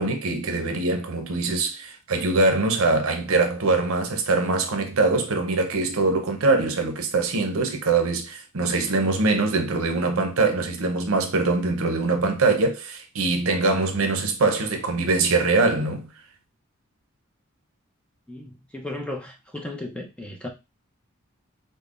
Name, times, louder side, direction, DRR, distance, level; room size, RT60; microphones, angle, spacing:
voice 1, 0.0-16.1, right 3 dB, 80° right, 0.7 m, -23 dB
voice 2, 18.3-20.5, left 1 dB, 5° left, 0.5 m, -35 dB
5.3 x 2.1 x 2.4 m
head